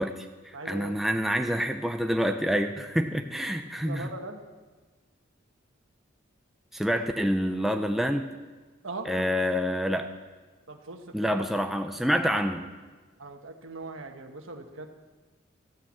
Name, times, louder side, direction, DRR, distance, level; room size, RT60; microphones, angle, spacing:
voice 1, 0.0-4.1 6.7-8.3 9.1-10.1 11.1-12.7, equal, ahead, 5 dB, 0.5 m, -27 dB
voice 2, 0.5-1.0 3.8-4.4 8.8-9.3 10.7-11.4 13.2-14.9, right 2 dB, 80° right, 5 dB, 1.3 m, -40 dB
13.5 x 9.1 x 7.4 m, 1.3 s
head